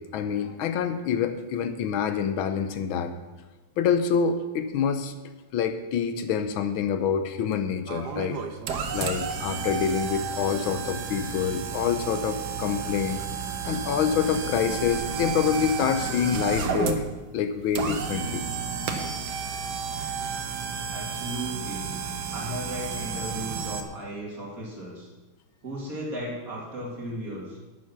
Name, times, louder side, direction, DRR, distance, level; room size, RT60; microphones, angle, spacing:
voice 1, 0.1-3.1 3.8-5.1 5.5-8.4 8.9-13.2 13.6-17.0 17.3-18.4, left 7 dB, 85° left, 9 dB, 1.6 m, -26 dB
Fireworks, 6.8-21.4, right 5 dB, 85° right, 2.0 m, -48 dB
sound 1, 7.9-23.8, right 6 dB, 60° right, 1.3 m, -32 dB
voice 2, 20.9-21.8 22.3-25.1 25.6-27.6, right 1 dB, 45° right, -3 dB, 2.9 m, -35 dB
9.4 x 8.9 x 6.0 m, 1.2 s
omnidirectional pair, 2.2 m